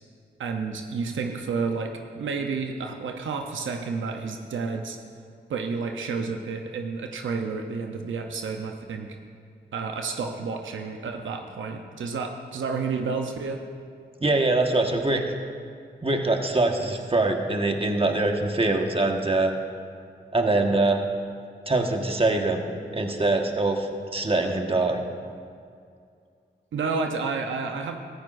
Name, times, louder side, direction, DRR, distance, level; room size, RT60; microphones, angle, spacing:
voice 1, 0.4-5.0 5.5-9.2 9.7-13.6 26.7-28.0, right 4 dB, 90° right, 4 dB, 0.7 m, -30 dB
voice 2, 14.2-15.2 16.0-19.5 20.3-21.0 21.7-22.6 22.9-25.0, right 2 dB, 30° right, 3 dB, 1.4 m, -23 dB
15.5 x 13.5 x 2.6 m, 2.3 s
cardioid pair, 45°, 20 cm